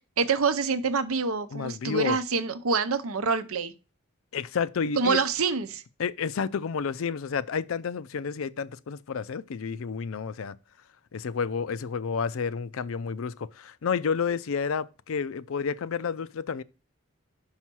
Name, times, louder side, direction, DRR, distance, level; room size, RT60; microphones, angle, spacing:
voice 1, 0.2-3.7 5.0-5.8, right 5 dB, 85° right, 0.7 m, -26 dB
voice 2, 1.5-2.2 4.3-5.2 6.0-10.6 11.1-16.6, left 6 dB, 75° left, 0.4 m, -30 dB
5.7 x 5.5 x 6.1 m
head